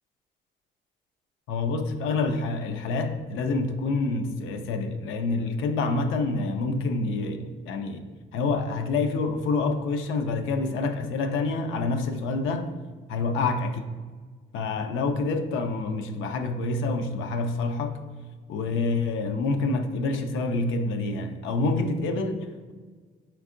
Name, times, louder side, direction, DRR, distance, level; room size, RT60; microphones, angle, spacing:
voice 1, 1.5-8.1 8.3-12.7 13.1-13.8 14.5-18.0 18.5-22.7, left 3 dB, 85° left, 0.4 m, -27 dB
4.5 x 3.5 x 2.5 m
cardioid pair, 90°, 20 cm